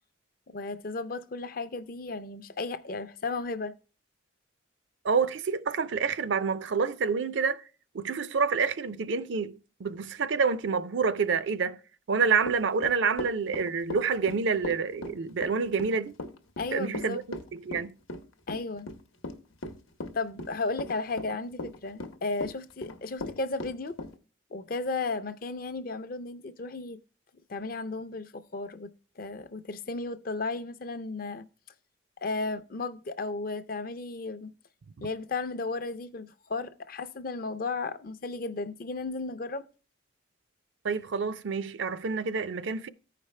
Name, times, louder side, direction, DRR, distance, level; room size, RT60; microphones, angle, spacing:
voice 1, 0.5-3.7 16.6-17.2 18.5-18.9 20.1-24.0 24.5-27.0 27.5-28.9 29.2-31.5 32.2-34.5 35.0-39.7, left 3 dB, 45° left, 0.5 m, -34 dB
voice 2, 5.0-7.6 7.9-11.8 12.1-16.1 16.7-17.9 35.0-35.1 40.8-42.9, right 5 dB, 65° right, 0.4 m, -28 dB
Run / Walk footsteps, 12.4-24.1, left 1 dB, 85° left, 0.9 m, -37 dB
14.0 x 5.0 x 3.2 m
head